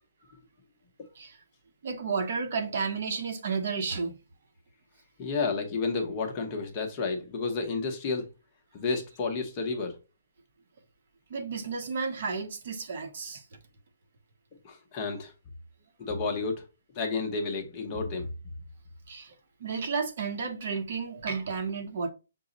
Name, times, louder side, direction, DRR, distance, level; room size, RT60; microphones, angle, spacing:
voice 1, 1.8-4.2 11.3-13.4 19.1-19.3 19.6-22.1, right 5 dB, 45° right, 0.7 m, -32 dB
voice 2, 5.2-8.3 8.7-10.0 14.6-15.3 16.0-16.6 16.9-18.3, left 4 dB, 25° left, 0.7 m, -31 dB
6.0 x 2.0 x 3.8 m
hypercardioid pair, 170°, 0 cm